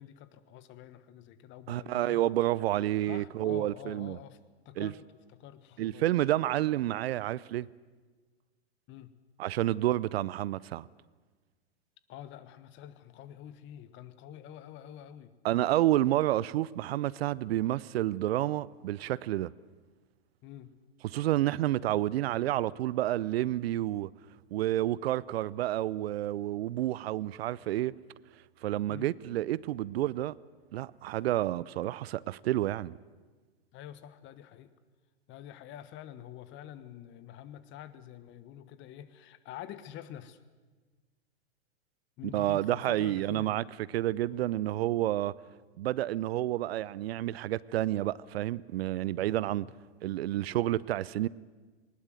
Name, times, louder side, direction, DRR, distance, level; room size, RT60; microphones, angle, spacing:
voice 1, 0.0-2.2 3.0-4.4 4.6-5.0 5.3-6.0 8.9-9.1 12.1-15.3 20.4-20.7 28.9-29.1 33.7-34.7 35.3-40.4 42.2-43.6 44.3-44.5 49.1-49.3 49.6-49.7, left 11 dB, 35° left, 1.3 m, -47 dB
voice 2, 1.7-4.2 4.8-4.9 5.8-7.7 9.4-10.9 15.4-19.5 21.0-24.1 24.5-27.9 28.6-30.3 30.7-33.0 42.3-43.6 43.9-45.3 45.8-49.7 50.0-51.3, right 14 dB, 65° right, 0.6 m, -29 dB
19.5 x 19.0 x 7.8 m
hypercardioid pair, 110°, 33 cm